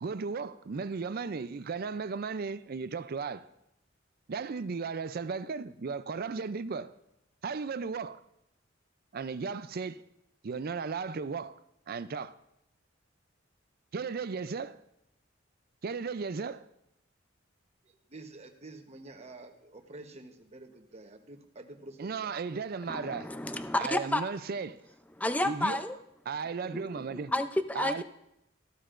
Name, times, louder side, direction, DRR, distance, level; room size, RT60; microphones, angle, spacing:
voice 1, 0.0-3.5 4.3-6.9 7.4-8.2 9.1-10.0 10.4-11.6 11.9-12.4 13.9-14.8 15.8-16.7 22.0-23.3 23.8-24.8 25.4-25.8 26.3-27.3 27.7-28.0, right 5 dB, 50° right, 0.5 m, -35 dB
voice 2, 18.1-22.4, right 2 dB, 35° right, 1.1 m, -48 dB
voice 3, 22.9-24.2 25.2-26.0 26.6-28.0, left 1 dB, 10° left, 0.5 m, -31 dB
14.5 x 12.5 x 2.5 m
head